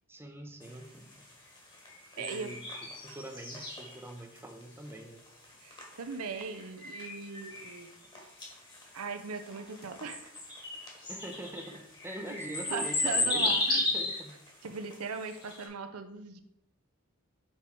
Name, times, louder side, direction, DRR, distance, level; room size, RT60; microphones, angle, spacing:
voice 1, 0.1-1.3 2.2-2.6 3.0-5.2 11.0-14.4, right 1 dB, 10° right, 3 dB, 0.6 m, -44 dB
sound 1, 0.6-15.7, left 2 dB, 20° left, 1.4 m, -35 dB
voice 2, 2.2-2.5 5.6-7.9 8.9-10.3 12.7-13.8 14.6-16.4, right 5 dB, 75° right, 8 dB, 0.6 m, -39 dB
5.8 x 4.6 x 4.4 m, 0.76 s
head